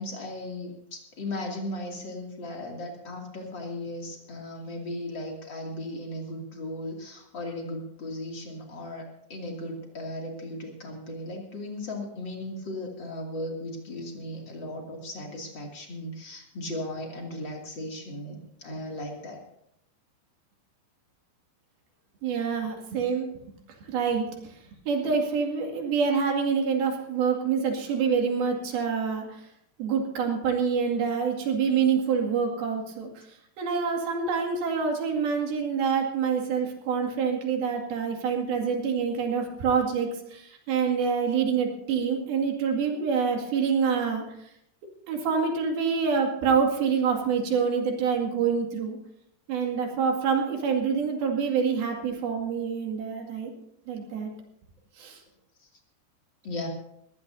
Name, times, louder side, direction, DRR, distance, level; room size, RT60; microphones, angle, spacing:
voice 1, 0.0-19.4 55.6-55.7 56.4-56.7, left 1 dB, 30° left, 0 dB, 2.4 m, -36 dB
voice 2, 22.2-23.3 23.8-24.5 24.9-29.4 29.8-33.2 33.6-44.2 45.1-49.0 49.5-53.5 53.9-54.3 55.0-55.2, right 6 dB, 60° right, 2 dB, 3.8 m, -26 dB
21.5 x 16.0 x 2.7 m, 0.74 s
omnidirectional pair, 5.4 m